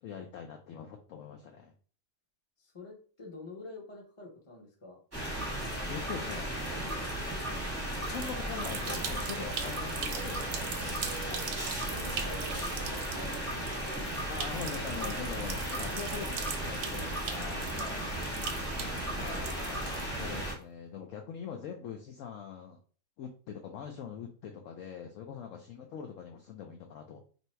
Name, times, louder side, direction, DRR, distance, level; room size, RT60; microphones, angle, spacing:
voice 1, 0.0-1.7 5.9-6.5 8.0-11.1 14.3-17.7 18.7-22.8 23.2-27.2, left 7 dB, 70° left, 3 dB, 0.8 m, -43 dB
voice 2, 2.6-5.0 11.3-11.4 11.8-13.7 17.8-18.0 25.4-25.5, left 2 dB, 25° left, -1 dB, 0.9 m, -47 dB
sound 1, 5.1-20.5, right 1 dB, 10° right, 0.9 m, -35 dB
sound 2, 7.9-20.4, right 7 dB, 70° right, 1.0 m, -42 dB
2.8 x 2.7 x 4.2 m, 0.41 s
omnidirectional pair, 1.7 m